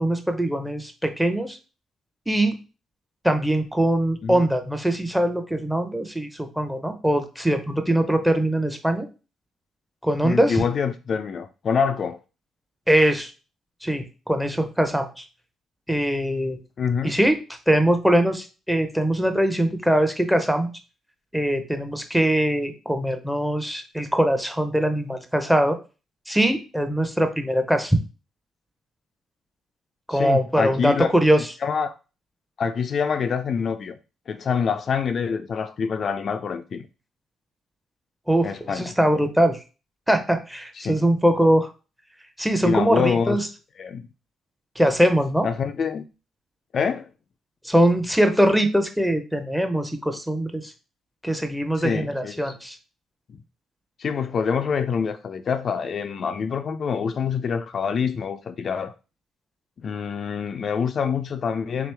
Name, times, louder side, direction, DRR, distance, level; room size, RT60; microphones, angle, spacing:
voice 1, 0.0-1.6 2.3-2.6 3.2-9.1 10.0-10.6 12.9-13.3 13.8-15.2 15.9-16.6 17.0-17.4 17.7-20.7 21.3-25.8 26.3-28.0 30.1-31.4 38.3-39.6 40.1-41.7 42.4-43.5 44.8-45.5 47.6-50.7 51.2-52.8, right 1 dB, 5° right, 0.7 m, -22 dB
voice 2, 10.2-12.2 16.8-17.2 30.1-31.1 31.6-31.9 32.6-33.9 34.3-36.9 38.4-38.9 40.8-41.0 42.6-43.4 43.8-44.1 45.4-46.1 46.7-47.1 51.8-52.5 53.3-53.4 54.0-58.9 59.8-61.9, left 6 dB, 50° left, 0.3 m, -26 dB
3.5 x 3.0 x 3.4 m
cardioid pair, 90°, 0 cm